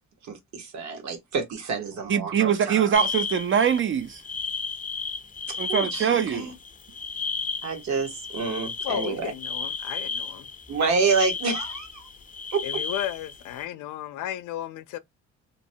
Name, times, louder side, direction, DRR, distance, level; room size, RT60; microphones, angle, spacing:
voice 1, 0.2-3.0 5.5-6.5 7.6-9.3 10.7-12.1 12.5-12.6, right 4 dB, 70° right, 1.1 m, -28 dB
voice 2, 2.1-4.2 5.6-6.5, right 8 dB, 45° right, 0.4 m, -23 dB
sound 1, 2.9-13.6, left 5 dB, 25° left, 0.5 m, -33 dB
voice 3, 8.8-10.5 11.2-11.3 12.6-15.0, left 12 dB, 80° left, 0.5 m, -34 dB
2.9 x 2.1 x 2.7 m
cardioid pair, 90°, 30 cm